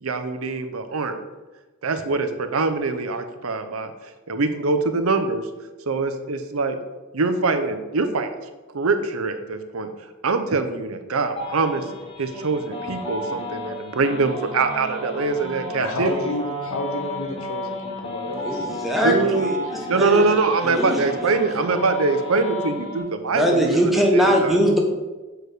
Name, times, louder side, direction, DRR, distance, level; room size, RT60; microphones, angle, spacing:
voice 1, 0.0-1.1 1.8-5.5 5.9-6.8 7.1-8.3 8.7-9.9 10.2-11.8 12.2-16.1 19.0-23.8 24.1-24.6, right 3 dB, 85° right, 8 dB, 0.7 m, -23 dB
sound 1, 11.4-23.0, left 1 dB, 25° left, 1.1 m, -33 dB
voice 2, 15.8-19.3, left 2 dB, 85° left, 5 dB, 1.0 m, -30 dB
voice 3, 18.4-19.6 19.9-20.2 20.6-21.4 23.3-24.8, equal, ahead, 0 dB, 0.9 m, -21 dB
6.4 x 4.8 x 4.9 m, 1.2 s
head